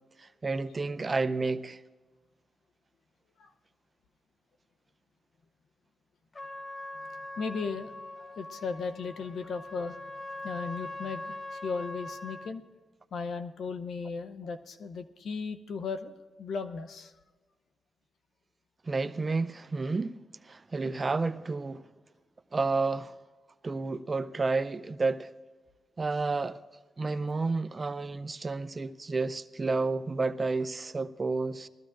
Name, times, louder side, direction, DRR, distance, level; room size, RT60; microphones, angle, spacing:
voice 1, 0.2-1.8 18.8-21.8 22.5-23.1 23.6-25.3 26.0-26.6 27.0-31.7, right 3 dB, 40° right, 0.6 m, -31 dB
Trumpet, 6.3-12.6, left 2 dB, 35° left, 1.0 m, -42 dB
voice 2, 7.4-10.1 10.4-12.6 13.1-16.1 16.4-17.1, left 5 dB, 80° left, 0.7 m, -36 dB
20.0 x 14.0 x 2.6 m
cardioid pair, 60°, 0 cm